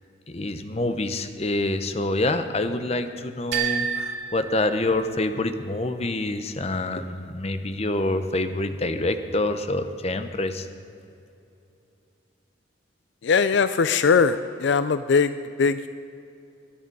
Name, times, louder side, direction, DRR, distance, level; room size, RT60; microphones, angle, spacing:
voice 1, 0.3-10.7, left 2 dB, 30° left, 9 dB, 0.7 m, -26 dB
sound 1, 3.5-5.4, right 7 dB, 60° right, 2.6 m, -30 dB
voice 2, 13.2-15.9, left 5 dB, 65° left, 12 dB, 0.4 m, -21 dB
21.5 x 10.0 x 5.4 m, 2.7 s
head